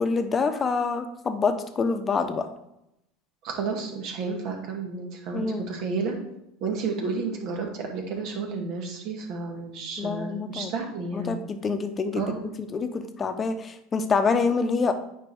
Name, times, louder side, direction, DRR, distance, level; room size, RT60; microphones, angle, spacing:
voice 1, 0.0-2.5 5.3-5.7 10.0-10.7 11.1-12.3 12.6-14.9, left 4 dB, 30° left, 8 dB, 0.9 m, -26 dB
voice 2, 3.4-6.2 6.6-11.4 12.1-12.4, right 4 dB, 60° right, 2 dB, 1.9 m, -31 dB
9.1 x 5.0 x 3.6 m, 0.83 s
hypercardioid pair, 95°, 0 cm